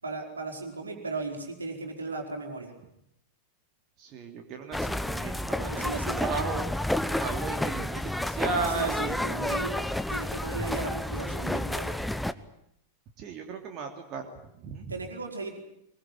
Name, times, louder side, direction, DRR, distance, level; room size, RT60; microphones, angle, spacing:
voice 1, 0.0-2.7 5.6-6.3 8.4-9.8 10.1-12.0 14.9-15.6, right 3 dB, 75° right, 3 dB, 4.7 m, -36 dB
voice 2, 4.0-6.7 7.1-9.2 13.2-14.3 14.6-14.9, right 4 dB, 35° right, 3 dB, 3.0 m, -35 dB
sound 1, 4.7-12.3, left 1 dB, 5° left, 1.0 m, -30 dB
24.0 x 22.5 x 9.2 m, 0.78 s
figure-of-eight pair, 90°, 0 cm